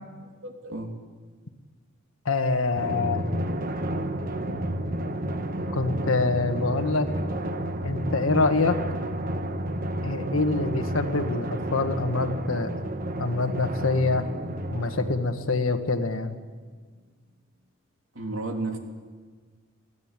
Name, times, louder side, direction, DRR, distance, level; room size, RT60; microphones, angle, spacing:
voice 1, 0.4-0.9 18.1-18.8, right 2 dB, 75° right, 3 dB, 3.0 m, -32 dB
voice 2, 2.2-3.2 5.7-7.1 7.8-8.8 10.0-12.7 13.2-14.2 14.7-16.4, left 3 dB, 80° left, 7 dB, 1.6 m, -25 dB
Drum, 2.7-15.8, right 1 dB, 45° right, 1.2 m, -31 dB
22.5 x 15.5 x 9.0 m, 1.5 s
head